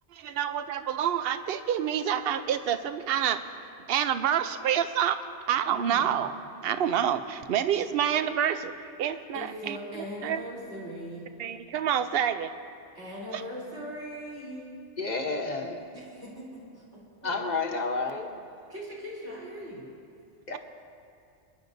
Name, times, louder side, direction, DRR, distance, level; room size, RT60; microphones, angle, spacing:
voice 1, 0.1-3.4 3.9-5.2 5.5-6.3 6.6-8.7 9.0-9.8 10.2-10.4 11.4-12.5 17.2-17.4, right 9 dB, 65° right, 11 dB, 0.7 m, -27 dB
voice 2, 5.7-6.2 9.3-11.3 12.9-14.7 15.9-17.0 18.7-19.8, equal, 80° right, -6 dB, 3.7 m, -40 dB
voice 3, 15.0-15.8 17.2-18.3 20.5-20.6, left 3 dB, 40° left, 3 dB, 1.1 m, -30 dB
29.5 x 10.5 x 2.7 m, 2.4 s
omnidirectional pair, 1.2 m